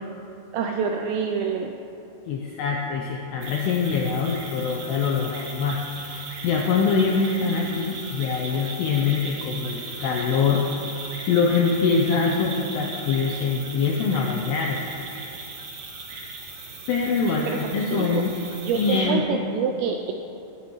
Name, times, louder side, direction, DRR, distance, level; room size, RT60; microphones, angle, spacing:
voice 1, 0.5-1.8 17.3-18.3 18.6-20.1, right 6 dB, 85° right, 3 dB, 2.5 m, -27 dB
voice 2, 2.3-11.0 11.3-14.8 16.9-18.3 18.7-19.4, left 5 dB, 85° left, 0 dB, 2.4 m, -24 dB
sound 1, 3.4-19.0, right 3 dB, 65° right, 1.5 m, -38 dB
19.0 x 9.7 x 3.1 m, 2.9 s
omnidirectional pair, 5.6 m